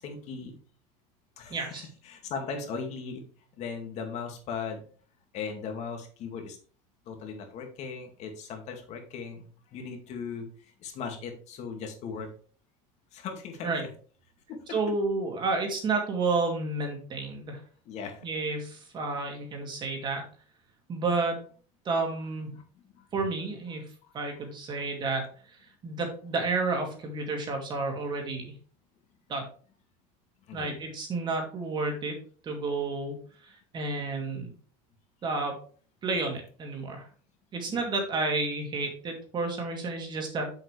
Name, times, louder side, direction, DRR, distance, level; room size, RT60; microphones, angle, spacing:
voice 1, 0.0-0.6 1.4-3.2 3.6-4.8 5.3-6.6 7.1-12.3 13.1-13.7 14.5-14.6 17.9-18.3 22.8-23.1 30.5-30.7 37.7-37.8, left 5 dB, 40° left, 4 dB, 2.2 m, -38 dB
voice 2, 1.5-1.8 13.6-13.8 14.7-17.6 18.2-20.2 20.9-21.4 21.8-22.6 23.1-23.9 24.1-25.3 25.8-28.5 29.3-29.4 30.5-32.2 32.4-33.2 33.4-34.5 35.2-35.6 36.0-37.0 37.5-40.6, right 3 dB, 25° right, 3 dB, 2.4 m, -31 dB
7.8 x 7.2 x 3.3 m, 0.42 s
cardioid pair, 155°, 18 cm